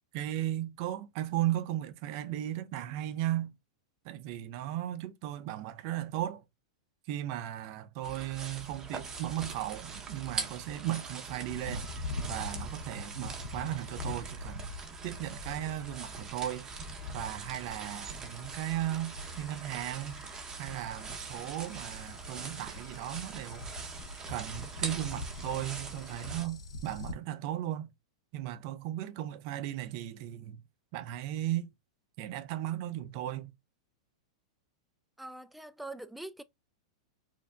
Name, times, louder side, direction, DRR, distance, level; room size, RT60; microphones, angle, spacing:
voice 1, 0.1-3.5 4.0-6.4 7.1-11.9 12.3-14.7 15.0-16.7 17.1-20.2 20.6-23.7 24.3-27.9 28.3-30.6 30.9-31.7 32.2-33.5, right 13 dB, 50° right, 0.6 m, -36 dB
sound 1, 8.0-26.5, right 4 dB, 20° right, 0.8 m, -43 dB
sound 2, 11.5-27.1, left 2 dB, 80° left, 0.7 m, -44 dB
voice 2, 35.2-36.4, right 2 dB, ahead, 0.3 m, -43 dB
4.4 x 2.7 x 2.3 m
hypercardioid pair, 120°, 3 cm